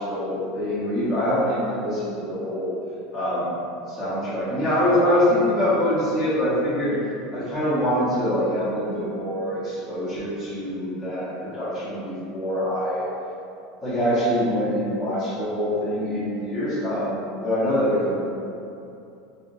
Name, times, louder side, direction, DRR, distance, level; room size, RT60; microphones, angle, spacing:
voice 1, 0.0-2.7 3.1-3.6 3.9-6.9 7.3-13.0 13.8-18.2, equal, 5° left, -17 dB, 1.3 m, -24 dB
3.4 x 2.5 x 2.7 m, 2.7 s
supercardioid pair, 110°, 0 cm